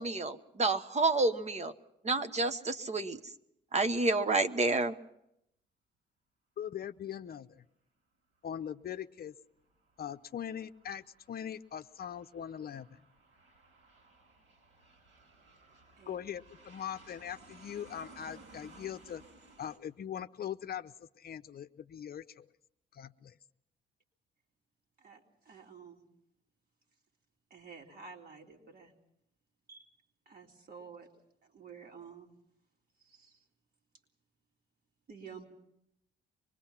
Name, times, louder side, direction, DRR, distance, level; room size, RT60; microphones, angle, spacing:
voice 1, 0.0-1.7 2.0-3.2 3.7-5.0, right 3 dB, 35° right, 10 dB, 1.2 m, -29 dB
voice 2, 6.6-7.6 8.4-9.3 10.0-13.0 16.1-19.2 19.6-22.5 22.9-23.3, left 9 dB, 50° left, 10 dB, 0.7 m, -41 dB
Aircraft, 9.6-19.8, right 2 dB, 65° right, 7.4 m, -58 dB
voice 3, 16.0-16.3 25.0-26.0 27.5-28.9 29.7-29.9 30.3-31.1 31.4-32.4 33.0-33.5 35.1-35.4, right 5 dB, 50° right, 1 dB, 3.8 m, -51 dB
25.0 x 21.0 x 5.9 m, 0.80 s
cardioid pair, 90°, 20 cm